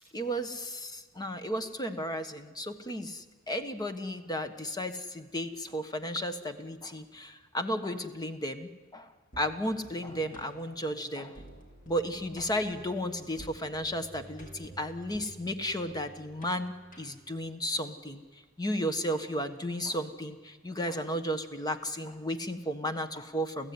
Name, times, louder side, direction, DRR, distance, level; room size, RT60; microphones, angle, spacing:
voice 1, 0.1-11.4 11.9-18.2 18.6-23.7, equal, 20° left, 9 dB, 1.3 m, -34 dB
sound 1, 9.3-17.4, right 1 dB, 40° left, 4.4 m, -51 dB
29.0 x 15.5 x 9.7 m, 1.4 s
head